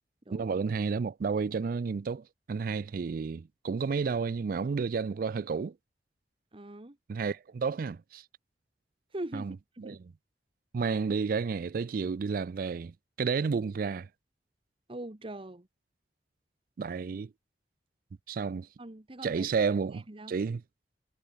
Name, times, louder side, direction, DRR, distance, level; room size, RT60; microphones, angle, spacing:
voice 1, 0.3-5.8 7.1-8.2 9.3-10.0 10.7-14.1 16.8-17.3 18.3-18.7 19.2-20.6, right 5 dB, 55° right, 0.4 m, -31 dB
voice 2, 6.5-7.0 9.1-9.5 9.8-10.0 14.9-15.7 18.8-19.5 19.9-20.3, right 1 dB, 30° right, 1.2 m, -41 dB
head